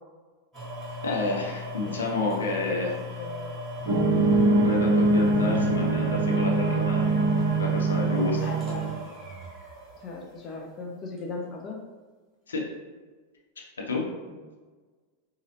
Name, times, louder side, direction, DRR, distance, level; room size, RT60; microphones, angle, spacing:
sound 1, 0.5-10.6 11.2-11.3, left 1 dB, 20° right, 1.3 m, -39 dB
voice 1, 1.0-2.9 4.6-7.1 7.6-8.4 12.5-12.7 13.8-14.1, left 3 dB, 70° left, -1 dB, 0.7 m, -30 dB
voice 2, 1.8-2.2 2.7-3.6 5.8-6.8 8.4-9.2 10.0-11.8 14.3-14.4, left 3 dB, 30° left, 0 dB, 0.5 m, -38 dB
sound 2, 3.9-8.9, right 2 dB, 55° right, 0.7 m, -23 dB
4.1 x 2.3 x 3.0 m, 1.4 s
figure-of-eight pair, 90°, 0 cm